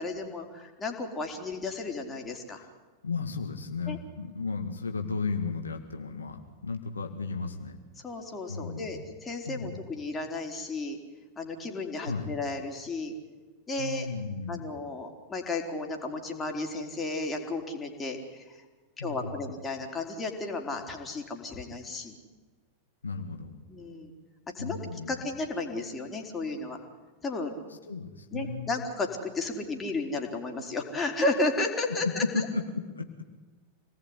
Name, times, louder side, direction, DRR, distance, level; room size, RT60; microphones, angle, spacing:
voice 1, 0.0-2.6 3.9-4.0 8.0-11.0 11.4-13.1 13.7-14.1 14.5-18.6 19.0-22.2 23.7-24.1 24.6-24.8 25.1-26.8 27.2-27.5 28.3-32.5, left 2 dB, 15° left, 2 dB, 4.2 m, -33 dB
voice 2, 3.0-7.8 8.5-9.0 9.5-9.8 12.0-12.3 13.8-14.8 19.0-19.3 23.0-23.6 24.6-25.2 27.9-28.8 31.9-33.1, left 4 dB, 75° left, 5 dB, 2.0 m, -34 dB
26.5 x 19.0 x 9.9 m, 1.3 s
figure-of-eight pair, 90°, 0 cm